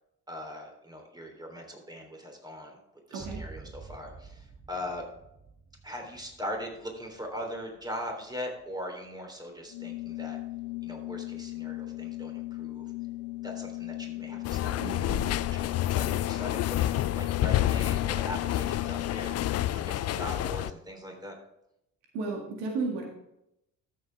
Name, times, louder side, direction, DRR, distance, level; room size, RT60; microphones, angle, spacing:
voice 1, 0.3-2.8 3.1-5.0 5.8-10.4 10.8-12.9 13.4-19.3 19.7-21.4, left 1 dB, 10° right, 2 dB, 3.4 m, -40 dB
voice 2, 3.1-3.4 14.8-15.3 22.1-23.0, right 3 dB, 75° right, 1 dB, 2.0 m, -33 dB
sound 1, 3.2-10.6, right 4 dB, 25° right, 0.9 m, -50 dB
Organ, 9.7-19.9, left 19 dB, 75° left, 0.7 m, -37 dB
sound 2, 14.4-20.7, left 13 dB, 40° left, 0.4 m, -29 dB
13.5 x 7.2 x 3.5 m, 0.82 s
hypercardioid pair, 50°, 43 cm